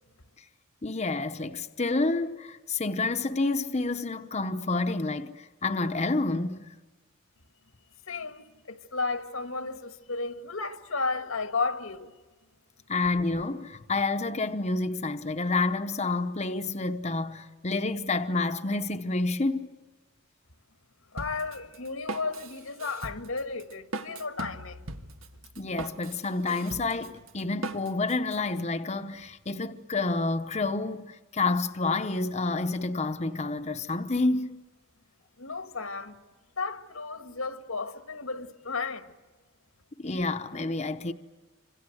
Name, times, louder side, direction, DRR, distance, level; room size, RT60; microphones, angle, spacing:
voice 1, 0.8-6.7 12.9-19.7 25.6-34.6 40.0-41.1, left 3 dB, 35° left, 0.9 m, -29 dB
voice 2, 8.1-12.1 21.1-24.8 35.4-36.1 36.6-39.1, left 4 dB, 85° left, 1.8 m, -33 dB
Drum kit, 21.2-28.4, right 2 dB, 85° right, 1.7 m, -40 dB
27.5 x 26.5 x 7.9 m
head